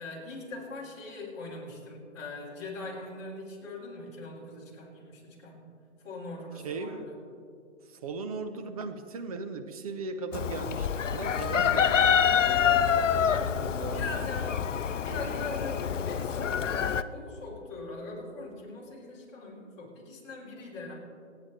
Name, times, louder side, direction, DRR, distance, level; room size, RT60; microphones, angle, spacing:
voice 1, 0.0-5.6 6.0-7.1 13.9-14.7 15.0-20.9, left 2 dB, 25° left, -5 dB, 3.6 m, -41 dB
voice 2, 6.6-7.1 7.8-14.3, right 3 dB, 30° right, 7 dB, 0.8 m, -38 dB
Chicken rooster, 10.3-17.0, left 8 dB, 75° left, 0.7 m, -26 dB
25.5 x 9.5 x 3.2 m, 2.3 s
hypercardioid pair, 150°, 37 cm